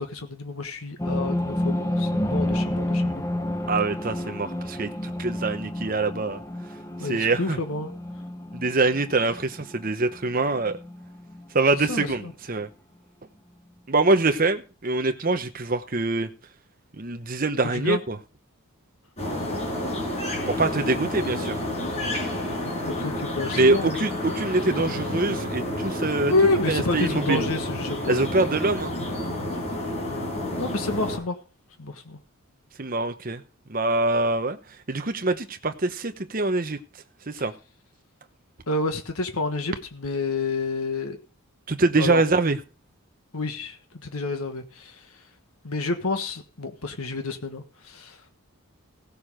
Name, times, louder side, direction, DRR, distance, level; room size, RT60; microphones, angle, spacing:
voice 1, 0.0-3.2 7.0-7.9 11.7-12.3 17.7-18.0 22.4-22.6 22.9-24.0 24.7-25.0 26.3-28.3 29.9-30.2 30.6-31.4 31.8-32.2 38.7-41.2 42.0-42.2 43.3-45.3 45.6-48.2, left 2 dB, 80° left, 1.5 m, -29 dB
sound 1, 1.0-11.5 11.8-11.9 12.2-12.3, left 1 dB, 15° left, 1.0 m, -30 dB
voice 2, 3.7-6.4 7.1-7.6 8.5-10.8 11.5-12.7 13.9-16.3 17.0-18.2 20.4-21.6 23.5-26.3 26.7-27.5 28.1-28.9 32.8-33.4 33.7-34.6 34.9-36.8 37.3-37.5 41.7-42.6, right 3 dB, 40° right, 0.9 m, -24 dB
sound 2, 19.2-31.2, left 1 dB, 30° left, 5.5 m, -30 dB
16.0 x 6.9 x 5.0 m
head